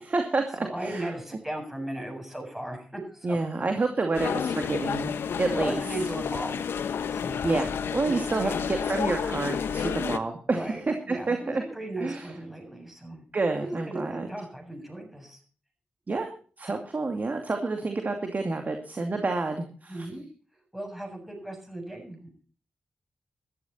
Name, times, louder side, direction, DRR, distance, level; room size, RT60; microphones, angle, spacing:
voice 1, 0.0-1.1 3.2-5.1 5.4-5.8 7.4-11.6 12.0-12.3 13.3-14.3 16.1-16.3 16.6-20.1, right 3 dB, 45° right, 5 dB, 2.5 m, -29 dB
voice 2, 0.6-3.4 5.5-6.7 7.1-7.5 8.0-8.7 10.5-10.8 11.1-13.2 13.6-15.4 19.9-20.2 20.7-22.3, right 1 dB, 5° right, 2 dB, 7.6 m, -36 dB
sound 1, 4.1-10.2, left 7 dB, 80° left, 1.1 m, -30 dB
14.0 x 13.5 x 4.3 m, 0.40 s
cardioid pair, 60°, 4 cm